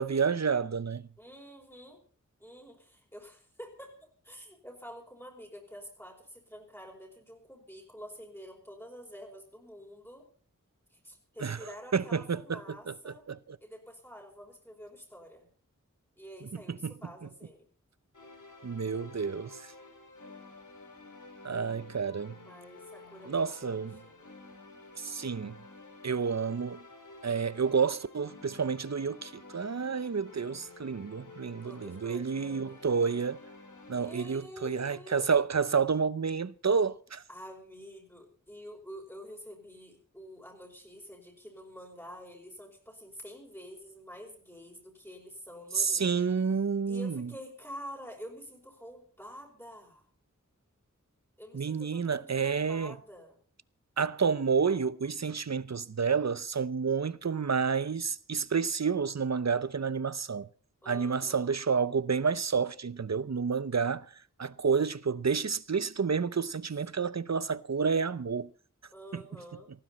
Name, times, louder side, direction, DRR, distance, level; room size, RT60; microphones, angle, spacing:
voice 1, 0.0-1.1 11.4-12.6 12.9-13.1 16.5-16.9 18.6-19.7 21.4-22.4 23.3-24.0 25.0-25.6 26.0-26.8 27.2-33.4 33.9-37.2 45.7-47.3 51.5-52.9 54.0-60.5 60.9-68.5 69.1-69.2, right 5 dB, 55° right, 0.7 m, -30 dB
voice 2, 1.2-2.0 2.4-3.9 4.2-10.2 10.9-13.3 13.6-15.5 16.2-17.7 22.4-24.3 31.6-32.8 33.9-35.3 37.3-46.3 46.9-50.0 51.4-53.4 60.8-61.6 68.9-69.7, equal, 5° left, 5.0 m, -48 dB
sound 1, 18.1-34.3, left 3 dB, 70° left, 3.6 m, -51 dB
18.5 x 15.0 x 4.2 m
wide cardioid pair, 50°, 32 cm